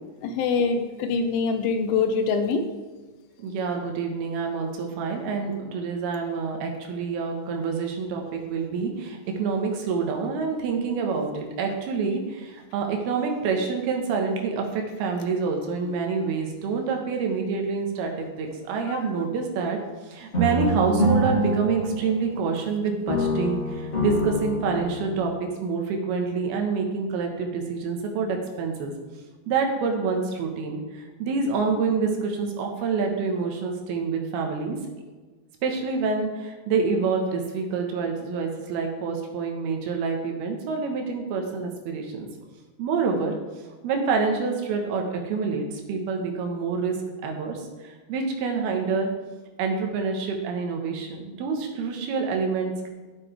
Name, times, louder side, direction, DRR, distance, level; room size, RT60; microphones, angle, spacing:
voice 1, 0.2-2.7 18.9-19.0, left 5 dB, 80° left, 7 dB, 2.3 m, -24 dB
voice 2, 3.4-19.8 20.1-25.3 25.6-28.9 29.5-34.8 35.6-42.3 42.8-43.3 43.8-47.0 47.2-49.1 49.6-52.9, right 5 dB, 75° right, 2 dB, 3.0 m, -27 dB
sound 1, 20.3-22.7 23.1-25.3, equal, 25° left, 1.5 m, -26 dB
11.0 x 8.4 x 3.3 m, 1.3 s
omnidirectional pair, 4.8 m